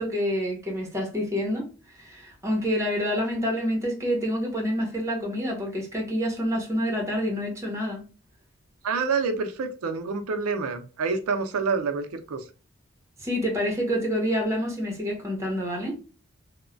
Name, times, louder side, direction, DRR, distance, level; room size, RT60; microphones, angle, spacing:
voice 1, 0.0-8.0 13.2-15.9, equal, 15° right, 0.8 m, -27 dB
voice 2, 8.8-12.4, right 4 dB, 90° right, 0.5 m, -27 dB
3.0 x 2.1 x 2.4 m
head